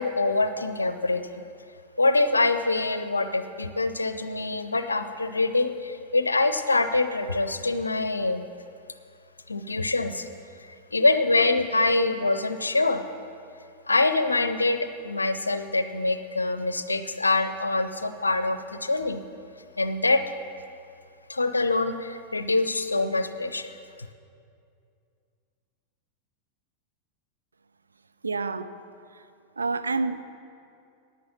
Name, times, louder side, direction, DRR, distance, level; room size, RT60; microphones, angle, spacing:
voice 1, 0.0-1.4 2.0-8.4 9.5-10.3 10.6-13.0 13.9-19.2 19.8-20.2 21.3-23.7, left 2 dB, 80° left, 10 dB, 0.6 m, -25 dB
voice 2, 28.2-28.7 29.6-30.2, right 3 dB, 75° right, 11 dB, 0.5 m, -27 dB
11.0 x 9.4 x 7.4 m, 2.5 s
figure-of-eight pair, 90°, 0 cm